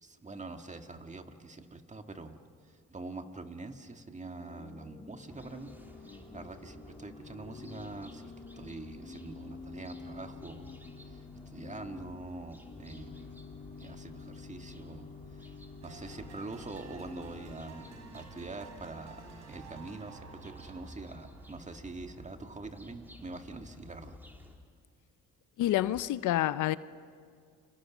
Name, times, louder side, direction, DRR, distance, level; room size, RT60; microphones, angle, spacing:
voice 1, 0.0-2.4 2.6-5.7 6.0-10.7 11.0-13.3 13.8-15.6 15.8-17.9 18.1-24.2, right 3 dB, 25° right, 1.8 m, -45 dB
Organ / Church bell, 4.3-18.5, left 5 dB, 25° left, 1.4 m, -49 dB
sound 1, 5.3-24.5, left 1 dB, 5° right, 3.2 m, -54 dB
sound 2, 15.8-22.6, right 4 dB, 65° right, 3.9 m, -52 dB
voice 2, 25.6-26.8, left 14 dB, 80° left, 0.7 m, -28 dB
30.0 x 26.5 x 6.2 m
cardioid pair, 90°, 30 cm